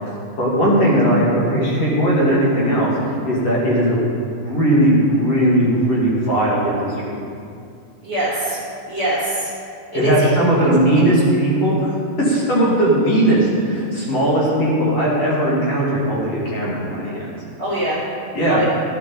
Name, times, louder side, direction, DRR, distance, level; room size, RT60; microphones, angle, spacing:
voice 1, 0.4-4.0 4.4-7.2 9.9-17.3 18.3-18.6, right 1 dB, 40° left, -6 dB, 2.6 m, -18 dB
voice 2, 8.0-8.6 8.9-9.5 9.9-10.3 17.6-18.0 18.5-18.6, right 1 dB, 25° left, -8 dB, 2.5 m, -23 dB
15.5 x 11.0 x 4.2 m, 2.5 s
omnidirectional pair, 5.5 m